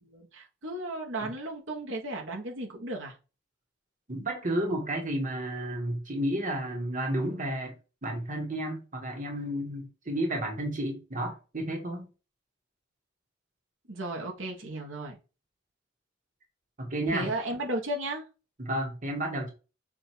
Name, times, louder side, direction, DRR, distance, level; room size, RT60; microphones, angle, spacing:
voice 1, 0.0-3.2 13.9-15.1 17.1-18.2, right 1 dB, 75° right, 1.4 m, -35 dB
voice 2, 4.1-12.1 16.8-17.3 18.6-19.5, right 1 dB, 40° right, 1.4 m, -32 dB
7.6 x 2.7 x 4.5 m
head